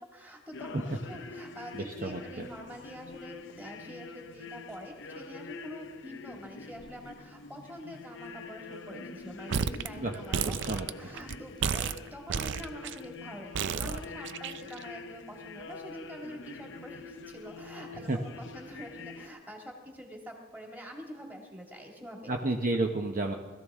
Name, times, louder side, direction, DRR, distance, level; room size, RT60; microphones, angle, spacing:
voice 1, 0.0-22.3, equal, 10° right, 0 dB, 2.2 m, -46 dB
Orthodox Church, 0.5-19.3, left 4 dB, 60° left, 0.7 m, -45 dB
voice 2, 1.7-2.5 10.0-10.2 10.4-10.9 17.9-18.2 22.3-23.3, right 2 dB, 40° right, 2 dB, 0.9 m, -31 dB
sound 1, 9.5-9.9 10.1-11.3 11.6-13.0 13.5-14.8, right 6 dB, 60° right, 0.5 m, -31 dB
20.5 x 14.0 x 3.7 m, 1.3 s
head